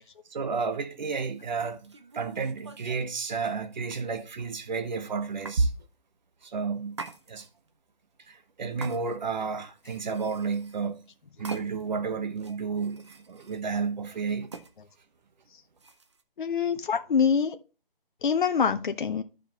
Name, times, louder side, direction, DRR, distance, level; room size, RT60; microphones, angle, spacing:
voice 1, 0.3-5.7 6.4-7.0 7.3-7.5 8.3-11.0 11.4-14.5, right 4 dB, 50° right, 1.1 m, -31 dB
sound 1, 1.5-3.1 3.9-4.5 5.4-5.6 6.9-7.7 8.8-9.4 9.8-10.9 11.4-12.0 12.4-13.6 14.5-14.7 15.8-16.2, right 4 dB, 30° right, 0.6 m, -45 dB
voice 2, 16.4-17.6 18.2-19.2, left 6 dB, 55° left, 0.8 m, -25 dB
13.0 x 5.0 x 2.9 m
hypercardioid pair, 165°, 29 cm